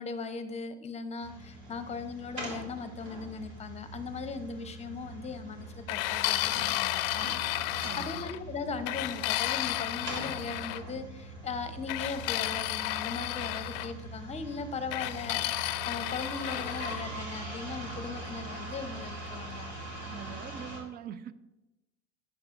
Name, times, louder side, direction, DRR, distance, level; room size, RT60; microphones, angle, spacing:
voice 1, 0.0-19.7, left 4 dB, 20° left, 10 dB, 0.8 m, -39 dB
sound 1, 1.2-20.8, right 2 dB, 80° right, 2.5 m, -42 dB
sound 2, 5.9-8.4 8.9-10.8 11.9-13.9 14.9-17.0, left 16 dB, 60° left, 0.6 m, -32 dB
voice 2, 7.8-8.2 20.1-21.3, right 9 dB, 30° right, 15 dB, 0.5 m, -42 dB
11.5 x 8.0 x 2.6 m, 1.0 s
hypercardioid pair, 80°, 32 cm